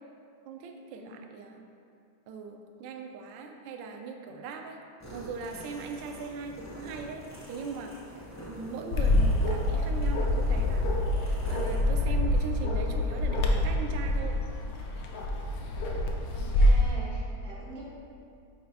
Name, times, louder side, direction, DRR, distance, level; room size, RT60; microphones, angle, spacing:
voice 1, 0.5-1.6 2.3-4.8 5.1-7.2 7.5-7.9 8.4-10.9 11.2-14.4, right 4 dB, 75° right, 3 dB, 1.1 m, -39 dB
sound 1, 5.0-11.8, equal, 15° left, 0.6 m, -46 dB
Bark, 8.9-16.9, left 1 dB, 70° left, 1.2 m, -26 dB
voice 2, 16.3-17.9, right 1 dB, 60° right, -7 dB, 0.6 m, -45 dB
6.5 x 4.8 x 3.4 m, 2.4 s
omnidirectional pair, 2.3 m